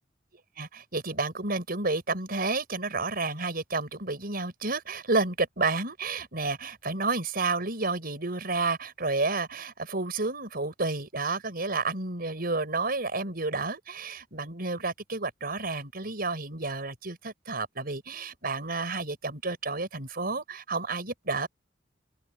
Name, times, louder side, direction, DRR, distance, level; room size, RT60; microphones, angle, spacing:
voice 1, 0.6-21.5, right 3 dB, 55° right, 5.8 m, -30 dB
open air
head